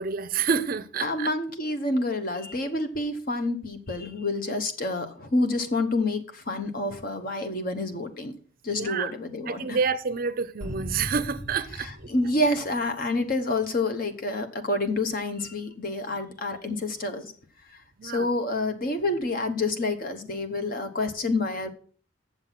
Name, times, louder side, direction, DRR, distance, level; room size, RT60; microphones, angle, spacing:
voice 1, 0.0-1.3 8.7-9.1 9.5-12.1 18.0-18.3, right 5 dB, 50° right, 0.5 m, -28 dB
voice 2, 1.0-8.3 8.6-9.8 11.8-17.3 18.0-21.7, left 2 dB, 45° left, 0.9 m, -28 dB
sound 1, 10.6-13.4, equal, 5° left, 2.5 m, -39 dB
7.5 x 7.2 x 5.7 m
head